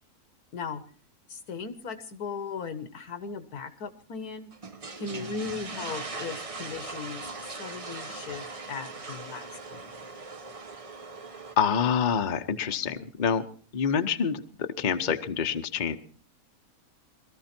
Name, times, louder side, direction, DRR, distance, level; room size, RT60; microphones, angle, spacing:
voice 1, 1.3-4.5 5.0-7.3 7.6-9.9, left 5 dB, 80° left, 11 dB, 1.8 m, -37 dB
sound 1, 4.5-11.5, right 3 dB, 30° right, 0.8 m, -40 dB
voice 2, 11.6-13.4 13.7-16.0, left 7 dB, 35° left, 8 dB, 0.9 m, -27 dB
21.5 x 14.0 x 4.4 m, 0.41 s
omnidirectional pair, 1.6 m